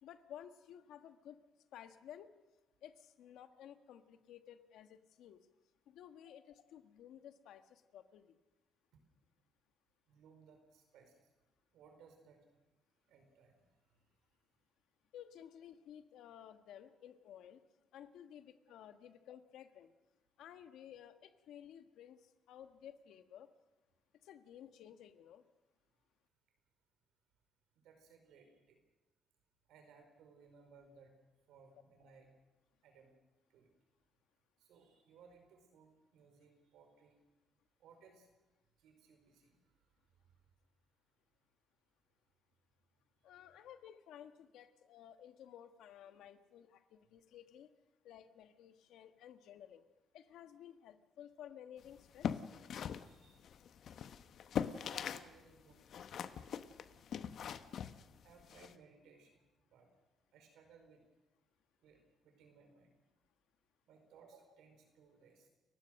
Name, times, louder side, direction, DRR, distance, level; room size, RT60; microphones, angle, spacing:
voice 1, 0.0-1.4 1.7-2.3 2.8-5.4 5.9-8.4 15.1-17.6 17.9-19.9 20.4-22.2 22.5-23.5 24.2-25.4 43.2-47.7 48.0-49.8 50.1-52.4, left 10 dB, 85° left, 9 dB, 1.4 m, -55 dB
voice 2, 10.1-11.3 11.7-12.4 13.1-13.7 13.9-14.0 19.0-19.1 27.7-28.8 29.7-31.1 31.5-32.3 32.8-33.1 33.5-33.7 34.6-37.1 37.8-38.3 38.8-39.6 53.0-53.5 54.8-55.8 56.2-56.7 57.1-57.3 58.2-59.9 60.3-61.0 61.8-62.9 63.9-65.5, right 5 dB, 85° right, 5 dB, 4.8 m, -63 dB
sound 1, 52.0-55.3 55.6-58.7, left 8 dB, 65° left, 1.0 m, -41 dB
29.0 x 15.5 x 6.5 m, 1.1 s
cardioid pair, 90°, 0 cm